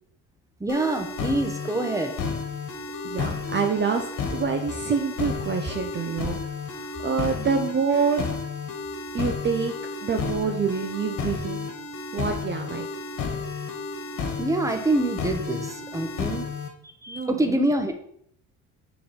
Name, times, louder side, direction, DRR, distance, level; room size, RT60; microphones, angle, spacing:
voice 1, 0.6-2.1 14.4-16.5 17.0-17.9, right 2 dB, 10° right, 6 dB, 1.0 m, -25 dB
sound 1, 0.7-16.7, left 5 dB, 65° left, 1.5 m, -32 dB
voice 2, 3.0-4.1 4.3-6.4 6.7-8.3 9.1-9.7 10.0-11.7 12.1-12.9 17.1-17.4, right 5 dB, 30° right, 4 dB, 0.7 m, -26 dB
6.7 x 4.0 x 5.1 m, 0.68 s
cardioid pair, 95°, 34 cm